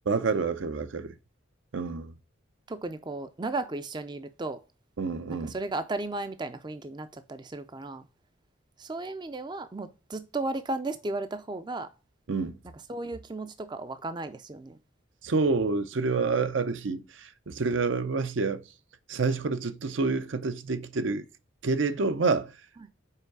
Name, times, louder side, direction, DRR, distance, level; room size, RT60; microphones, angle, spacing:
voice 1, 0.1-1.1 1.7-2.1 5.0-5.6 12.3-12.5 15.2-18.6 19.1-21.2 21.6-22.5, right 4 dB, 70° right, 0.6 m, -28 dB
voice 2, 2.7-4.6 5.3-8.0 8.8-11.9 12.9-14.8 22.8-22.9, right 2 dB, 20° right, 0.4 m, -35 dB
5.7 x 4.6 x 4.6 m
head